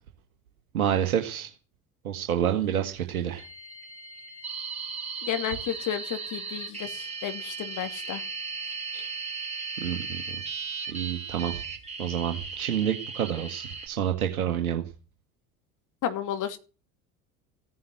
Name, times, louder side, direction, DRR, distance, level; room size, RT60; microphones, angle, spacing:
voice 1, 0.7-1.5 2.0-3.4 9.8-10.4 10.9-11.6 12.0-14.8, right 10 dB, 75° right, 4 dB, 1.8 m, -28 dB
sound 1, 3.4-13.9, right 5 dB, 15° right, 5.0 m, -36 dB
voice 2, 5.2-8.2 8.9-9.1 16.0-16.6, left 10 dB, 45° left, 9 dB, 2.7 m, -32 dB
15.5 x 9.6 x 7.7 m, 0.36 s
figure-of-eight pair, 70°, 43 cm